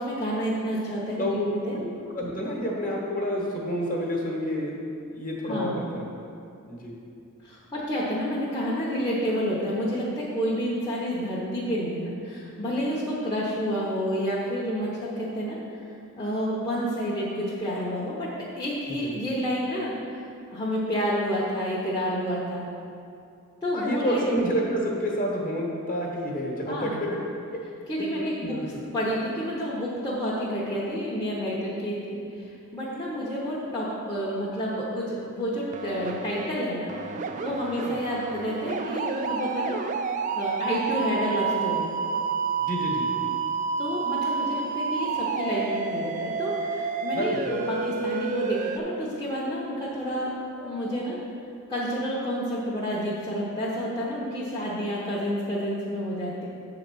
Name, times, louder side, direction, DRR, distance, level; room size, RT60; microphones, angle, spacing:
voice 1, 0.0-1.8 5.5-5.8 7.4-15.6 16.2-18.3 18.5-22.7 23.6-24.3 26.7-27.0 27.9-37.0 37.4-39.8 40.3-41.9 43.8-51.2 51.7-56.5, equal, 15° left, -8 dB, 0.8 m, -29 dB
voice 2, 1.2-1.5 1.8-1.9 2.1-4.7 5.1-6.0 6.7-6.9 18.9-19.2 23.7-27.2 28.4-28.8 42.6-43.1 47.1-47.6, equal, 40° left, -2 dB, 1.2 m, -29 dB
sound 1, 35.7-36.5 36.9-48.8, right 5 dB, 35° right, 0.3 m, -29 dB
7.7 x 3.9 x 6.1 m, 2.5 s
head